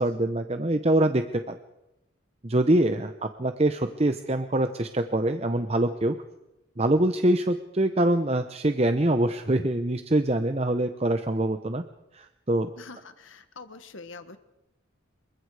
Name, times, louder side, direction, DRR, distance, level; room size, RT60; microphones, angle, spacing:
voice 1, 0.0-1.6 2.4-6.2 6.8-11.8 12.1-12.7, right 1 dB, 30° right, 8 dB, 0.8 m, -24 dB
voice 2, 12.8-14.4, left 3 dB, 70° left, 10 dB, 1.5 m, -44 dB
27.5 x 23.5 x 4.9 m, 0.93 s
head